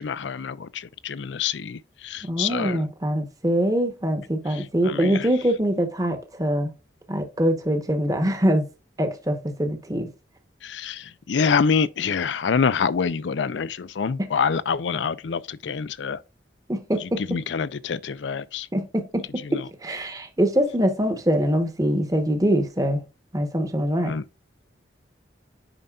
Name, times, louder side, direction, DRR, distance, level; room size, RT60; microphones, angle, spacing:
voice 1, 0.0-2.8 4.5-5.3 10.6-16.2 17.3-18.7 19.5-19.6 24.0-24.2, left 6 dB, 80° left, 0.5 m, -26 dB
voice 2, 2.2-6.7 7.1-8.6 9.0-10.1 16.7-17.4 18.7-23.0 23.3-24.1, equal, 20° right, 1.0 m, -24 dB
9.0 x 5.5 x 2.4 m
head